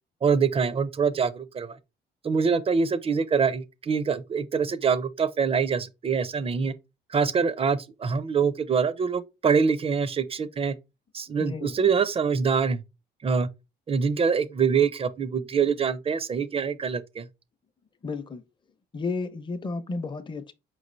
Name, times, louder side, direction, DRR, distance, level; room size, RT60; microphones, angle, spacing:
voice 1, 0.2-1.8 2.2-6.7 7.1-10.7 11.1-12.8 13.2-13.5 13.9-17.3, right 6 dB, 30° right, 0.4 m, -25 dB
voice 2, 11.4-11.7 18.0-18.4 18.9-20.5, left 3 dB, 25° left, 0.5 m, -32 dB
4.8 x 3.1 x 2.6 m
cardioid pair, 90°, 20 cm